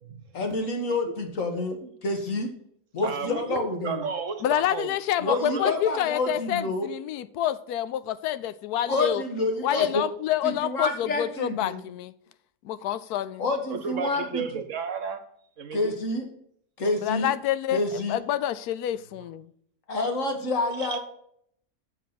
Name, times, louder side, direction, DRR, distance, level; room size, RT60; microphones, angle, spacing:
voice 1, 0.3-2.5 2.9-4.0 5.2-6.9 8.9-10.0 10.4-11.8 13.4-14.5 15.7-16.3 16.8-17.3 17.7-18.2 19.9-21.0, left 2 dB, 60° left, 1.9 m, -28 dB
voice 2, 3.0-4.9 5.3-5.7 13.7-15.2 15.6-15.9 19.1-19.2 20.8-21.0, right 6 dB, 60° right, 1.1 m, -32 dB
voice 3, 4.4-9.2 9.6-12.1 12.6-13.4 17.0-19.5, left 11 dB, 85° left, 1.1 m, -28 dB
7.3 x 6.9 x 5.8 m
omnidirectional pair, 1.6 m